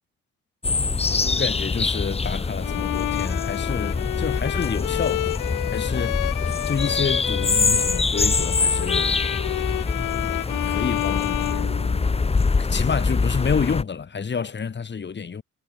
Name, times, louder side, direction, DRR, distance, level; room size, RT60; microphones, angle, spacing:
sound 1, 0.6-13.8, left 4 dB, 20° left, 1.0 m, -24 dB
voice 1, 1.1-5.4 5.7-6.3 6.6-9.2 10.7-11.7 12.6-15.4, left 6 dB, 35° left, 3.1 m, -29 dB
Bowed string instrument, 2.6-12.4, left 17 dB, 90° left, 0.9 m, -29 dB
cardioid pair, 90°, 30 cm